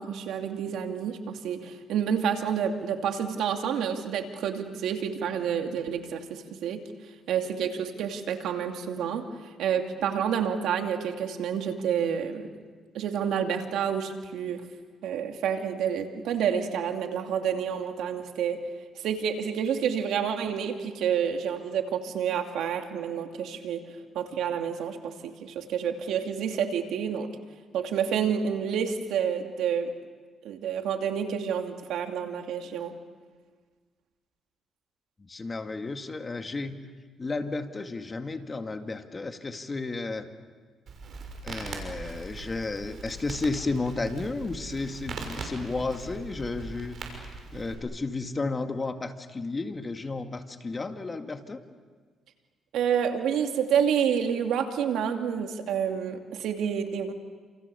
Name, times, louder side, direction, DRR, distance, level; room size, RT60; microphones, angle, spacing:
voice 1, 0.0-6.8 7.3-12.5 12.9-14.6 15.0-18.7 18.9-27.3 27.7-29.9 30.4-32.9 52.7-57.1, right 8 dB, 80° right, 4 dB, 2.6 m, -29 dB
voice 2, 35.2-36.8 37.2-40.3 41.4-47.0 47.5-51.6, left 3 dB, 30° left, 6 dB, 2.1 m, -33 dB
Crackle, 40.9-47.7, right 4 dB, 55° right, 6.3 m, -40 dB
29.5 x 28.0 x 7.0 m, 1.5 s
cardioid pair, 90°, 0 cm